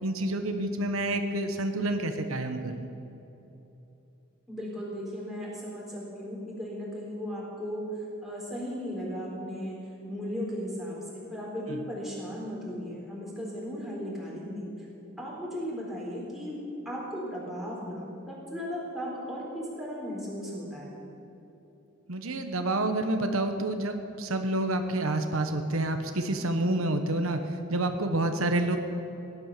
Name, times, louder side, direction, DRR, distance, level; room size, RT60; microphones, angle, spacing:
voice 1, 0.0-2.9 11.7-11.8 22.1-27.4 27.7-28.8, right 2 dB, 90° right, 6 dB, 1.2 m, -28 dB
voice 2, 4.5-7.8 8.2-9.8 10.1-14.9 15.2-16.6 16.9-21.0, equal, ahead, -5 dB, 3.9 m, -36 dB
18.0 x 11.0 x 6.8 m, 3.0 s
head